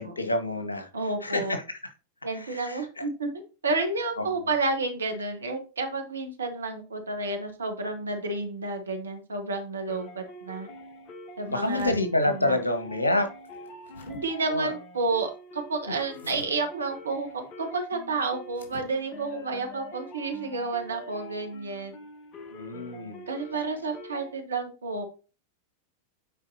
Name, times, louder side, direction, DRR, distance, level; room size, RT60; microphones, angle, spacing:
voice 1, 0.0-0.9 1.2-1.8 2.3-3.0 4.2-4.3 11.5-13.3 14.5-14.7 22.5-23.3, left 2 dB, 80° left, 7 dB, 1.2 m, -28 dB
voice 2, 0.9-1.6 2.2-3.3 3.6-10.7 11.4-11.9 12.2-12.6 14.0-22.0 23.3-25.0, right 3 dB, 70° right, 5 dB, 1.3 m, -30 dB
sound 1, 9.9-24.3, left 1 dB, 35° left, 1.1 m, -45 dB
sound 2, 11.4-12.0 13.5-14.2 16.1-16.5 18.5-18.9, left 4 dB, 60° left, 2.4 m, -45 dB
8.8 x 4.5 x 2.8 m, 0.34 s
figure-of-eight pair, 90°, 0 cm